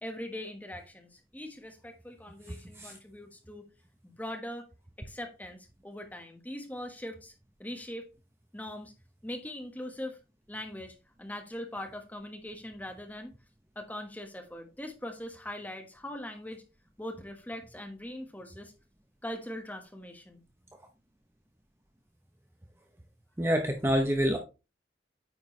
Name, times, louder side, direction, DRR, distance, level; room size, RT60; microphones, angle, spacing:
voice 1, 0.0-3.7 4.0-4.7 5.0-7.3 7.6-8.1 8.5-8.9 9.2-10.2 10.5-13.3 13.7-16.6 17.0-18.7 19.2-20.4, left 1 dB, 10° left, 4 dB, 1.2 m, -41 dB
voice 2, 23.4-24.4, equal, 15° right, 3 dB, 0.7 m, -26 dB
9.2 x 4.5 x 3.1 m, 0.29 s
head